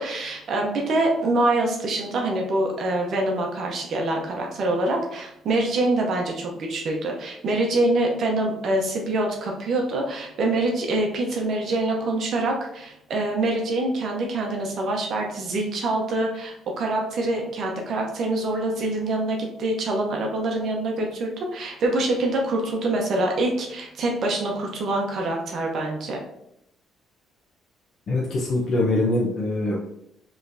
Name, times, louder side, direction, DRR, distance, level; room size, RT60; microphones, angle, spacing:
voice 1, 0.0-26.2, right 2 dB, 55° right, 1 dB, 0.7 m, -25 dB
voice 2, 28.1-29.8, left 2 dB, 45° left, -4 dB, 0.7 m, -23 dB
5.0 x 3.2 x 2.6 m, 0.78 s
cardioid pair, 130°, 0 cm